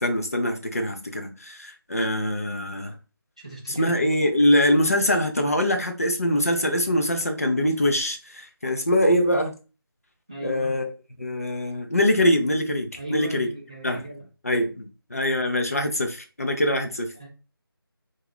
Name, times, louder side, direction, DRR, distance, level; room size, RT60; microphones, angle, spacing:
voice 1, 0.0-2.9 3.7-9.5 10.4-10.9 11.2-13.5 13.8-14.0 14.4-17.1, left 1 dB, 40° left, 0.4 m, -23 dB
voice 2, 3.4-4.1 10.3-10.7 13.0-14.3 17.1-17.3, right 2 dB, 15° right, 0.4 m, -36 dB
2.3 x 2.2 x 3.4 m
figure-of-eight pair, 175°, 13 cm